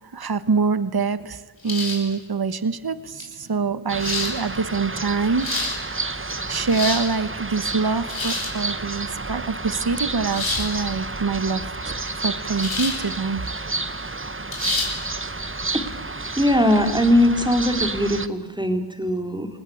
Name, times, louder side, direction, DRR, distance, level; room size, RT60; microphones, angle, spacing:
voice 1, 0.0-11.6 12.2-13.4, right 4 dB, 45° right, 13 dB, 1.3 m, -25 dB
sound 1, 1.7-2.1 3.2-3.3 4.0-4.3 5.2-5.8 6.5-7.1 8.0-8.6 10.3-10.7 12.6-13.0 13.4-13.5 14.5-14.9, left 3 dB, 65° left, 6.5 m, -27 dB
sound 2, 3.9-18.3, right 3 dB, 25° right, 1.3 m, -30 dB
voice 2, 16.4-19.5, left 1 dB, 10° right, 5 dB, 3.8 m, -20 dB
28.5 x 19.5 x 8.7 m, 1.3 s
wide cardioid pair, 50°, 50 cm